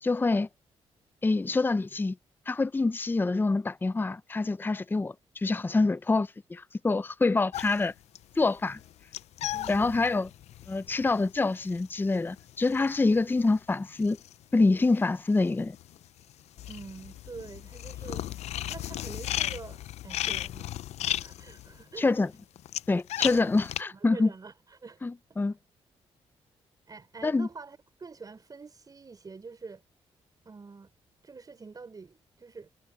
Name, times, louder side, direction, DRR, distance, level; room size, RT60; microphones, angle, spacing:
voice 1, 0.0-0.5 1.2-2.1 2.5-7.9 8.4-8.8 9.7-10.3 10.7-14.2 14.5-15.7 22.0-22.3 22.9-24.3 25.0-25.5 27.2-27.5, left 3 dB, 20° left, 0.6 m, -26 dB
sound 1, 7.5-15.0 15.3-23.8, left 13 dB, 85° left, 0.6 m, -36 dB
voice 2, 9.4-10.0 16.7-18.2 18.7-20.7 21.0-22.1 23.2-23.6 23.9-25.0 26.9-29.8 30.4-30.9 31.2-32.7, right 4 dB, 35° right, 4.3 m, -46 dB
cardioid pair, 85°, 11 cm